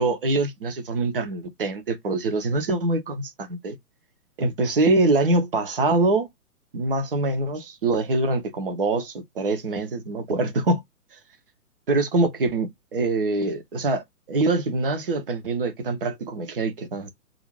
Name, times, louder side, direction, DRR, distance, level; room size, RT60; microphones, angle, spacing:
voice 1, 0.0-3.8 4.4-6.3 6.7-10.8 11.9-14.0 14.3-17.1, right 2 dB, 40° right, 0.6 m, -24 dB
2.5 x 2.4 x 3.0 m
figure-of-eight pair, 130°, 46 cm